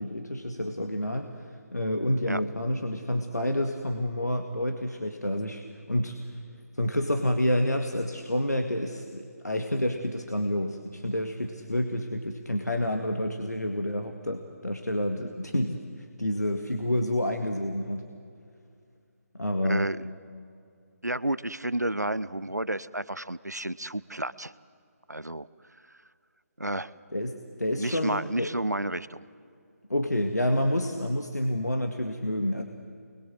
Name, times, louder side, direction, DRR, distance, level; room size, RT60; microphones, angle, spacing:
voice 1, 0.0-5.6 5.9-6.4 6.7-18.1 19.3-19.9 27.1-28.5 29.9-32.6, left 1 dB, 80° left, 4 dB, 2.0 m, -29 dB
voice 2, 19.6-20.0 21.0-24.5 25.1-25.5 26.6-26.9 27.8-29.2, right 1 dB, 85° right, 17 dB, 0.9 m, -31 dB
28.5 x 21.5 x 7.7 m, 2.4 s
figure-of-eight pair, 150°, 9 cm